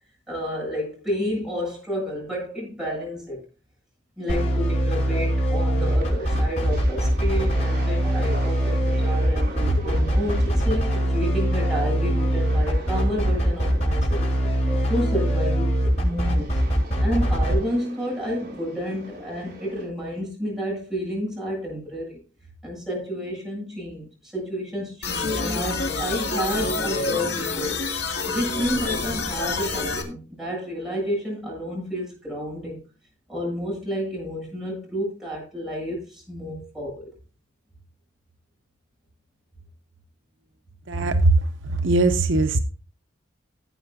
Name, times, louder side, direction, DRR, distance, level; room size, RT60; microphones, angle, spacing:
voice 1, 0.3-3.4 4.2-14.3 14.9-16.6 17.0-22.2 22.6-27.8 28.3-32.8 33.3-37.1, equal, ahead, 7.5 m, -30 dB
sound 1, 4.3-17.5, right 1 dB, 35° left, 6.4 m, -23 dB
sound 2, 5.8-19.8, right 1 dB, 45° right, 6.8 m, -41 dB
sound 3, 25.0-30.0, left 3 dB, 55° left, 2.3 m, -27 dB
voice 2, 40.9-41.4 41.6-42.6, right 2 dB, 70° right, 0.8 m, -20 dB
18.0 x 8.7 x 2.7 m
head